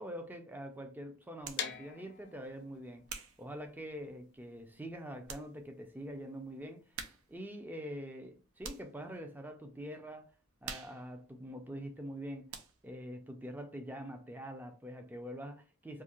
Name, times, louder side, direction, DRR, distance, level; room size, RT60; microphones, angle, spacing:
voice 1, 0.0-3.0 3.4-7.0 7.3-10.3 10.6-12.5 12.8-16.0, equal, 10° right, 0.3 m, -44 dB
sound 1, 1.4-1.7 2.4-4.4 4.9-5.0 5.2-5.5 5.8-5.9 6.9-7.4 7.7-9.0 9.5-9.8 10.1-12.2 12.5-13.0, right 5 dB, 90° right, 0.5 m, -48 dB
sound 2, 1.5-7.4, left 8 dB, 55° left, 0.5 m, -46 dB
2.5 x 2.4 x 2.9 m
head